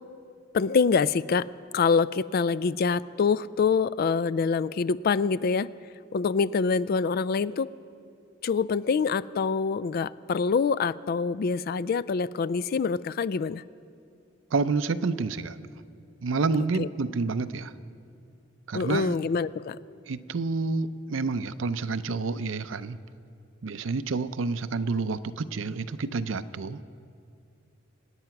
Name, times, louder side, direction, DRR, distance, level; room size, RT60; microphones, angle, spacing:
voice 1, 0.5-1.5 1.7-5.7 6.1-7.7 8.4-13.6 16.8-16.9 18.7-19.8, left 5 dB, 50° left, 18 dB, 0.3 m, -25 dB
voice 2, 14.5-15.6 16.2-17.7 18.7-19.1 20.1-23.0 23.6-26.8, right 4 dB, 85° right, 13 dB, 0.6 m, -29 dB
26.0 x 9.1 x 5.9 m, 2.5 s
head